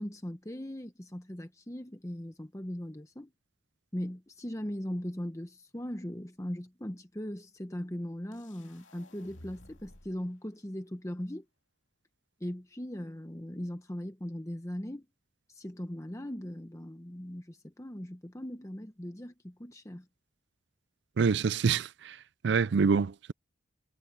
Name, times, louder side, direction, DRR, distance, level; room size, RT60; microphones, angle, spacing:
voice 1, 0.0-3.3 3.9-11.4 12.4-15.1 15.5-20.1, equal, 15° left, 0.9 m, -39 dB
sound 1, 8.3-10.3, left 1 dB, 75° left, 2.5 m, -54 dB
voice 2, 21.2-22.2 22.4-23.3, right 5 dB, 60° right, 0.4 m, -26 dB
head